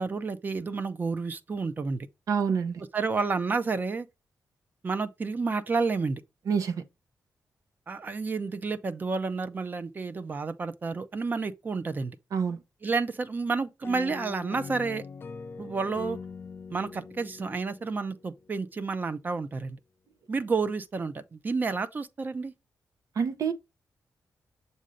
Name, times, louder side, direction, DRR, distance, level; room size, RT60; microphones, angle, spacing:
voice 1, 0.0-2.1 2.9-4.1 4.8-6.2 7.9-12.2 12.8-15.0 15.6-16.2 16.7-19.8 20.3-22.5, right 4 dB, 30° right, 0.5 m, -30 dB
voice 2, 2.3-2.8 6.5-6.8 12.3-12.6 23.2-23.5, right 6 dB, 70° right, 0.8 m, -27 dB
sound 1, 13.8-18.5, left 4 dB, 35° left, 0.4 m, -42 dB
7.4 x 2.7 x 4.9 m
wide cardioid pair, 165°, 6 cm